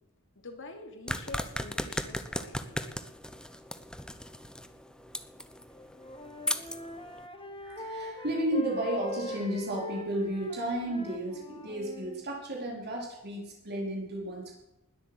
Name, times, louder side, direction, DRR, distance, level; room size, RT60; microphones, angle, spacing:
voice 1, 0.3-2.9, left 2 dB, 60° left, 5 dB, 3.1 m, -46 dB
sound 1, 1.1-7.3, left 1 dB, 5° left, 0.9 m, -37 dB
Wind instrument woodwind instrument, 5.7-12.2, left 1 dB, 25° left, 2.6 m, -42 dB
voice 2, 7.6-14.6, right 1 dB, 50° right, -1 dB, 4.4 m, -33 dB
20.0 x 8.5 x 7.9 m, 0.90 s
head